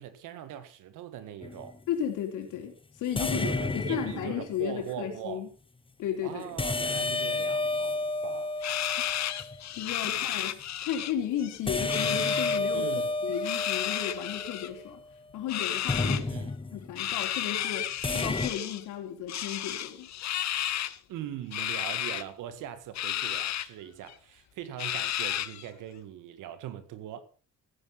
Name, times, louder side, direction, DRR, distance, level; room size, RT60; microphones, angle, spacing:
voice 1, 0.0-1.8 3.2-5.4 6.2-8.6 10.0-10.3 12.7-13.1 16.0-16.5 21.1-27.2, right 10 dB, 90° right, 1.9 m, -41 dB
sound 1, 1.4-1.7 3.1-4.7 6.6-9.6 11.7-15.0 15.9-16.9 18.0-18.5, left 3 dB, 15° left, 1.2 m, -31 dB
voice 2, 1.9-5.5 6.0-6.6 9.0-9.1 9.7-10.5 10.8-12.9 13.2-15.0 15.3-16.3 16.7-17.9 18.1-20.1, left 9 dB, 90° left, 3.8 m, -34 dB
Corellas screech multiple, 8.6-11.1 11.4-12.6 13.3-14.7 15.5-16.2 17.0-18.8 19.3-21.0 21.5-22.2 22.9-23.7 24.1-24.2 24.8-25.7, left 12 dB, 65° left, 1.0 m, -32 dB
15.0 x 10.0 x 5.8 m
cardioid pair, 90°, 30 cm